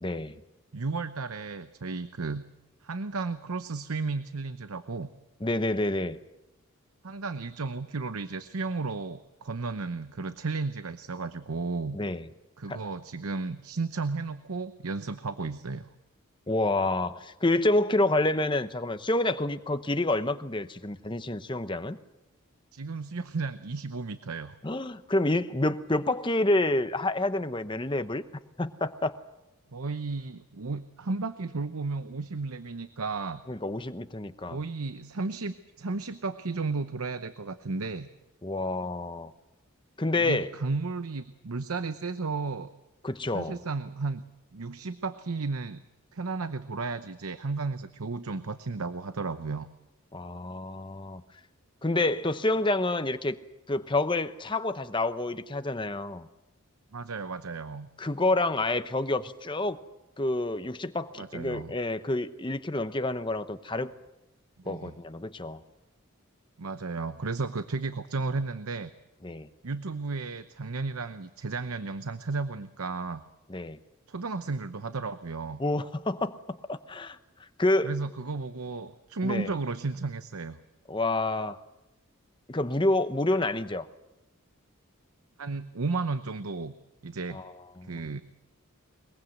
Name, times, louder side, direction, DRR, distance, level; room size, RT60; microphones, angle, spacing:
voice 1, 0.0-0.4 5.4-6.2 11.9-12.3 12.7-12.8 16.5-22.0 24.6-28.2 28.6-29.1 33.5-34.6 38.4-39.3 40.0-40.5 43.0-43.6 50.1-51.2 51.8-53.4 53.7-56.3 58.0-59.8 60.2-63.9 64.7-65.6 69.2-69.5 73.5-73.8 75.6-77.9 79.2-79.5 80.9-81.6 82.5-83.9 87.3-88.1, left 2 dB, 20° left, 11 dB, 0.8 m, -28 dB
voice 2, 0.7-2.5 2.8-5.1 7.0-12.0 12.6-15.9 22.7-24.6 29.7-33.4 34.4-38.1 40.1-42.7 43.3-44.2 44.5-45.8 46.1-49.7 56.9-57.9 61.2-61.7 64.6-64.9 66.6-68.9 69.6-73.2 74.1-75.6 77.8-80.6 85.4-86.7 87.0-87.4 87.9-88.2, right 3 dB, 80° right, 11 dB, 0.8 m, -33 dB
22.0 x 22.0 x 7.9 m, 0.96 s
head